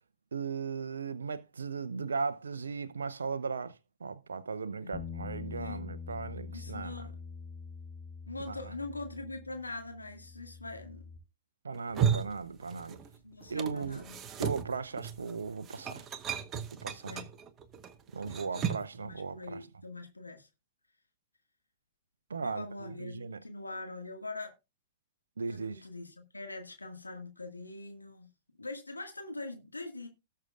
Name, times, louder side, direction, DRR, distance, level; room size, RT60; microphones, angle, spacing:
voice 1, 0.3-7.1 8.5-8.7 11.6-13.0 13.5-14.0 14.4-16.1 16.7-17.2 18.1-19.7 22.3-23.4 25.4-25.8, right 5 dB, 75° right, 0.6 m, -37 dB
Bass guitar, 4.9-11.2, left 5 dB, 35° left, 4.8 m, -45 dB
voice 2, 5.6-5.9 6.5-7.1 8.3-11.0 13.2-14.2 17.0-17.3 18.2-20.5 22.4-24.5 25.5-28.3 28.6-30.1, left 2 dB, 85° left, 1.9 m, -43 dB
sound 1, 11.7-13.2 13.4-19.0, right 7 dB, 25° right, 1.1 m, -35 dB
18.5 x 6.7 x 2.4 m
figure-of-eight pair, 105°, 0 cm